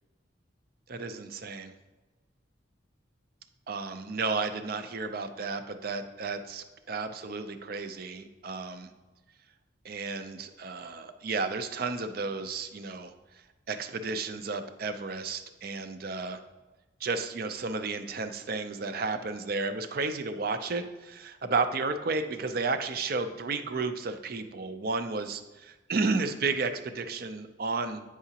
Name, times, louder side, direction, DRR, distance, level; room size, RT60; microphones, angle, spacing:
voice 1, 0.9-1.7 3.7-8.9 9.8-13.1 13.7-16.4 17.0-28.0, right 4 dB, 50° right, 9 dB, 0.5 m, -32 dB
8.9 x 4.9 x 2.8 m, 1.1 s
head